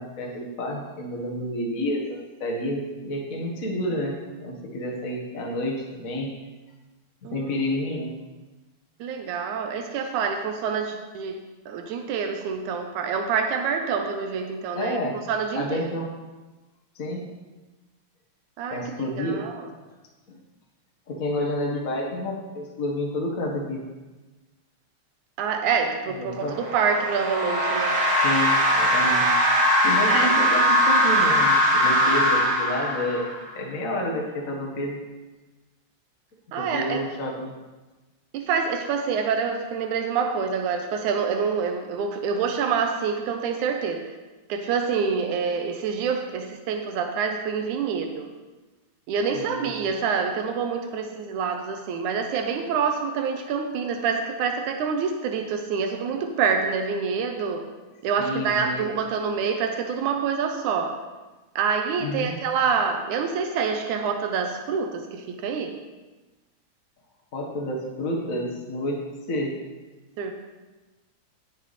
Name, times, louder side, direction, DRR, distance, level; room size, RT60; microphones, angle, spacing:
voice 1, 0.0-6.3 7.2-8.1 14.7-15.2 15.5-16.1 16.9-17.3 18.7-19.4 20.3-20.4 21.1-23.8 26.2-26.6 28.2-29.3 29.8-33.2 33.5-35.0 36.5-37.5 49.3-49.7 58.2-59.0 62.0-62.4 67.3-69.0 69.3-69.5, left 1 dB, 40° left, -1 dB, 1.4 m, -29 dB
voice 2, 9.0-11.4 11.7-15.0 15.3-15.9 18.6-19.7 25.4-28.0 30.1-30.3 36.5-37.0 38.3-44.2 44.5-48.3 49.1-57.7 58.0-61.0 61.6-65.8 70.2-70.3, right 6 dB, 85° right, 5 dB, 2.3 m, -26 dB
sound 1, 26.4-33.5, equal, 40° right, 2.7 m, -21 dB
17.5 x 6.7 x 4.2 m, 1.2 s
omnidirectional pair, 3.4 m